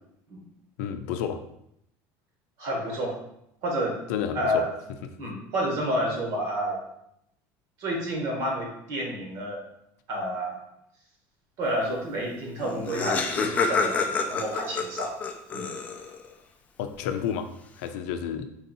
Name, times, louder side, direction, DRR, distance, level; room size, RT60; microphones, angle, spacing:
voice 1, 0.8-1.4 4.1-4.7 16.8-17.5 17.8-18.5, left 8 dB, 85° left, 8 dB, 0.5 m, -30 dB
voice 2, 2.6-3.2 3.6-4.0 4.3-4.7 5.2-6.8 7.8-9.6 10.1-10.6 11.6-15.2 15.5-15.7, equal, 50° right, 0 dB, 1.2 m, -29 dB
Laughter, 12.3-12.4 12.6-16.3, left 4 dB, 20° left, 0.3 m, -28 dB
4.6 x 2.6 x 4.1 m, 0.77 s
cardioid pair, 170°, 8 cm